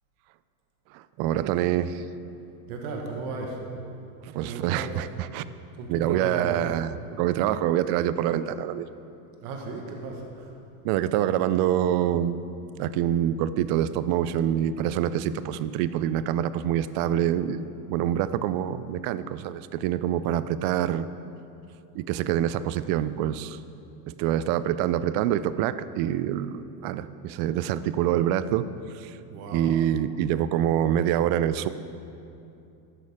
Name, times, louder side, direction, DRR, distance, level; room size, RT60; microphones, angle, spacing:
voice 1, 0.9-2.0 4.2-5.4 5.9-8.9 10.8-12.4 12.8-21.1 21.9-23.6 24.1-28.7 28.9-29.2 29.5-31.7, right 11 dB, 50° right, 14 dB, 0.5 m, -26 dB
voice 2, 2.7-3.6 4.4-4.9 5.7-6.6 9.4-10.5 29.3-29.7, right 3 dB, 75° right, 1 dB, 1.7 m, -35 dB
13.0 x 11.5 x 3.7 m, 2.7 s
supercardioid pair, 135°, 46 cm